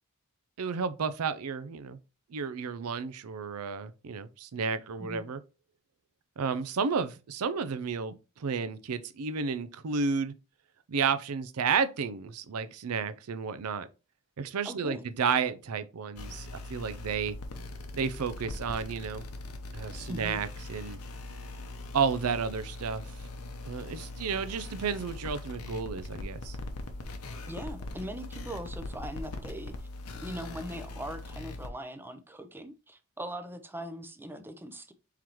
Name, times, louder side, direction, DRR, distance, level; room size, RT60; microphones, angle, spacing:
voice 1, 0.6-2.0 2.3-5.4 6.4-10.3 10.9-13.9 14.4-17.4 17.9-19.3 19.7-21.0 21.9-23.0 23.6-26.6, right 5 dB, 85° right, 0.5 m, -32 dB
voice 2, 14.6-15.0 20.1-20.4 27.5-29.7 30.2-34.9, equal, 10° right, 0.5 m, -40 dB
sound 1, 16.2-31.7, left 2 dB, 85° left, 0.8 m, -41 dB
4.6 x 3.8 x 3.0 m
head